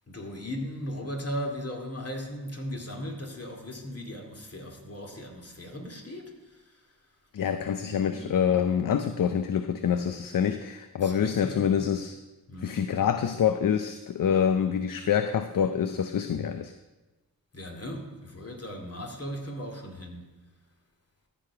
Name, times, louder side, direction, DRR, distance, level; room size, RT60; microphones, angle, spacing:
voice 1, 0.1-6.4 7.6-8.3 11.0-11.8 12.5-12.9 17.5-20.4, equal, 40° left, 1 dB, 2.4 m, -37 dB
voice 2, 7.3-12.2 12.6-16.7, left 8 dB, 60° left, 9 dB, 0.6 m, -26 dB
14.5 x 5.1 x 4.6 m, 1.2 s
cardioid pair, 40°, 38 cm